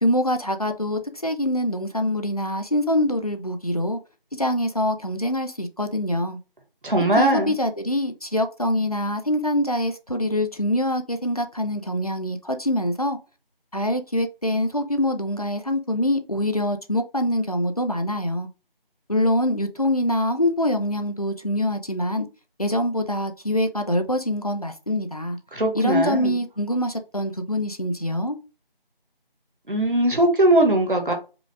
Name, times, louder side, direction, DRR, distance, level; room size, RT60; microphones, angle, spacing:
voice 1, 0.0-4.0 4.3-6.4 7.2-13.2 13.7-18.5 19.1-22.3 22.6-25.4 25.7-28.4, left 1 dB, 40° left, 0.5 m, -24 dB
voice 2, 6.8-7.5 25.5-26.4 29.7-31.1, right 1 dB, 60° right, 1.4 m, -20 dB
4.9 x 2.4 x 3.5 m
figure-of-eight pair, 170°, 29 cm